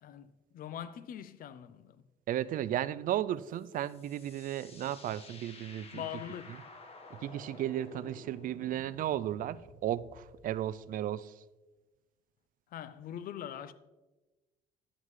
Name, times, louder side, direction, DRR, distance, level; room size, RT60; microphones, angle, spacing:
voice 1, 0.0-2.0 5.9-6.6 12.7-13.7, left 10 dB, 60° left, 0.6 m, -42 dB
voice 2, 2.3-6.1 6.5-6.6 7.1-11.4, right 12 dB, 55° right, 0.4 m, -34 dB
sound 1, 3.5-10.6, left 3 dB, 35° left, 1.4 m, -53 dB
11.5 x 9.4 x 3.2 m
cardioid pair, 110°, 17 cm